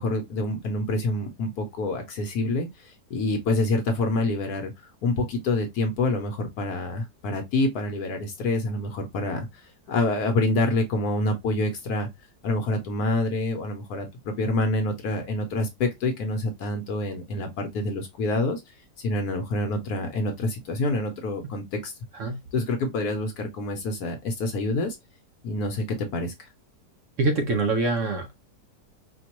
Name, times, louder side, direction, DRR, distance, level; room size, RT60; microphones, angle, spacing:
voice 1, 0.0-12.1 12.4-21.9 22.5-25.0 25.4-26.5, left 2 dB, 70° left, 1.2 m, -27 dB
voice 2, 27.2-28.4, right 3 dB, 60° right, 0.9 m, -24 dB
4.3 x 2.3 x 2.9 m
omnidirectional pair, 1.8 m